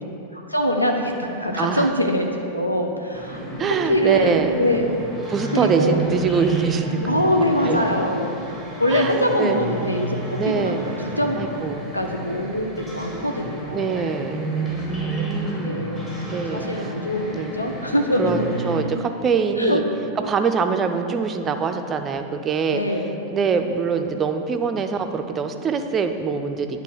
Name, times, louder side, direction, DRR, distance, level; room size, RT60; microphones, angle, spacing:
voice 1, 0.3-3.4 3.8-5.0 5.5-6.1 6.9-8.5 8.8-10.8 11.1-11.4 11.9-14.2 15.4-16.0 16.5-18.4 19.6-19.8 22.7-23.3, equal, 85° left, 2 dB, 0.6 m, -23 dB
voice 2, 1.6-1.9 3.6-4.5 5.3-7.3 7.6-7.8 8.9-9.6 10.4-10.8 11.4-11.9 13.7-14.4 14.7-16.0 16.3-16.9 17.3-17.5 18.2-19.8 20.3-22.8 23.3-26.8, right 5 dB, 25° right, 6 dB, 0.5 m, -24 dB
sound 1, 3.1-18.8, right 2 dB, 15° left, 1.8 m, -31 dB
9.7 x 3.3 x 6.5 m, 2.6 s
figure-of-eight pair, 90°, 0 cm